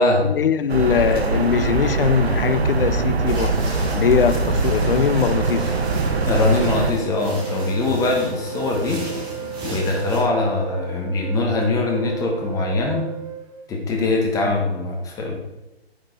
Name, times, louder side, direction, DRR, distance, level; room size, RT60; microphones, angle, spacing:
voice 1, 0.2-3.6 3.9-5.7 14.4-14.5, left 7 dB, 60° left, 0.7 m, -21 dB
sound 1, 0.7-6.9, right 3 dB, 75° right, 1.4 m, -22 dB
sound 2, 3.3-10.2, equal, 15° right, 3.8 m, -35 dB
Wind instrument woodwind instrument, 3.7-13.6, right 7 dB, 35° right, 1.9 m, -34 dB
voice 2, 6.2-9.0 9.7-13.1 13.7-15.4, left 2 dB, 10° left, 1.5 m, -22 dB
10.0 x 7.4 x 4.1 m
figure-of-eight pair, 140°, 32 cm